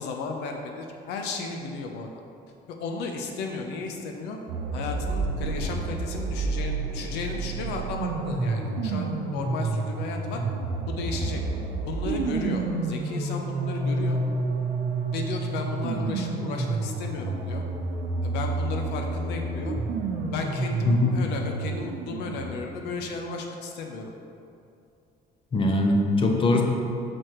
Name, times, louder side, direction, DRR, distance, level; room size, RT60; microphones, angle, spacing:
voice 1, 0.0-2.1 2.7-4.4 4.7-10.4 10.9-11.4 11.8-14.2 15.1-17.6 18.2-19.8 20.3-24.1, left 4 dB, 85° left, 2 dB, 0.7 m, -34 dB
sound 1, 4.5-22.5, right 3 dB, 90° right, 0.8 m, -29 dB
voice 2, 20.9-21.2 25.5-26.6, left 2 dB, 30° left, 2 dB, 0.8 m, -21 dB
6.1 x 4.4 x 4.7 m, 2.5 s
cardioid pair, 110°, 17 cm